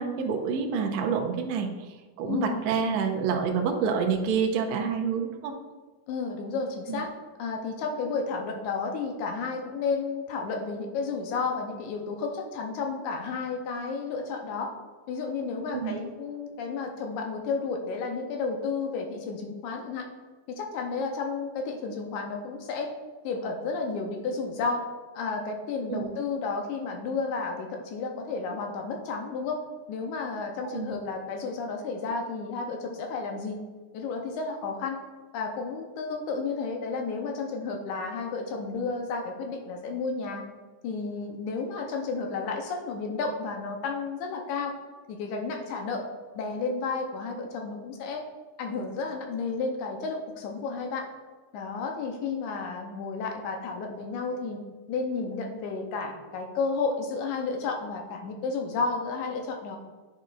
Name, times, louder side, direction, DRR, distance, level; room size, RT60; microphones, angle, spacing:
voice 1, 0.0-5.5 6.9-7.0 15.7-16.0 25.9-26.1 30.6-31.0, right 6 dB, 80° right, 2 dB, 1.6 m, -28 dB
voice 2, 2.3-2.6 6.1-7.1 7.4-14.7 15.1-20.1 20.5-22.9 23.2-24.8 25.1-29.6 29.9-33.6 33.9-35.0 35.3-40.4 40.8-44.7 45.1-46.1 46.4-48.2 48.6-51.1 51.5-54.6 54.9-59.8, left 4 dB, 90° left, 2 dB, 2.2 m, -32 dB
9.3 x 5.3 x 2.5 m, 1.3 s
omnidirectional pair, 3.4 m